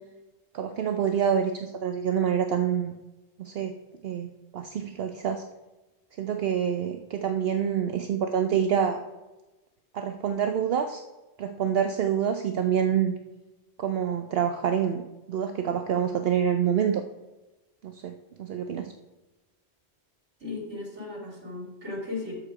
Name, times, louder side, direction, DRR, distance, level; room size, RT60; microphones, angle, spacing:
voice 1, 0.5-3.0 3.4-3.7 4.0-5.4 6.2-9.0 9.9-11.0 11.4-13.1 13.8-15.0 15.3-17.0 17.8-18.1 18.4-18.9, right 8 dB, 65° right, 6 dB, 0.8 m, -26 dB
voice 2, 20.4-22.3, left 3 dB, 80° right, -1 dB, 3.1 m, -36 dB
13.0 x 4.9 x 4.8 m, 1.1 s
omnidirectional pair, 1.1 m